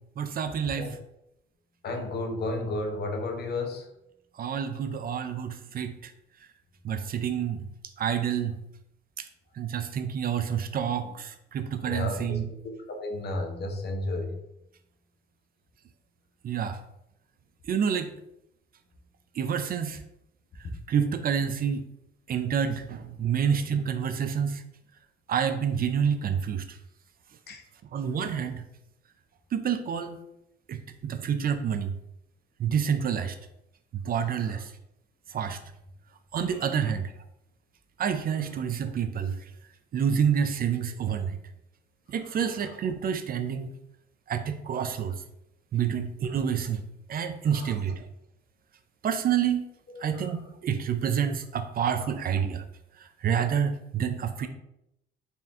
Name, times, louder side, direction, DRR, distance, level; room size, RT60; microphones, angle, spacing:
voice 1, 0.2-1.0 4.4-6.1 6.8-7.7 8.0-8.5 9.2-9.3 9.6-12.5 16.4-16.8 17.7-18.1 19.4-20.0 20.9-21.8 22.3-24.6 25.3-26.8 27.9-28.6 29.5-30.2 30.7-31.9 32.6-33.4 34.1-34.7 35.3-35.6 36.3-37.1 38.0-39.4 39.9-41.4 42.1-43.7 44.3-45.1 45.7-46.8 47.1-48.1 49.0-49.6 50.0-52.6 53.2-54.5, right 7 dB, 50° right, 9 dB, 0.4 m, -28 dB
voice 2, 1.8-3.8 11.8-14.3 27.5-27.6 34.4-34.6 36.5-36.6 42.3-42.7 45.8-46.0 47.5-47.7 49.9-50.4 51.9-52.1 54.4-54.5, left 2 dB, 55° left, 3 dB, 0.8 m, -33 dB
4.2 x 2.5 x 3.5 m, 0.81 s
cardioid pair, 90°, 20 cm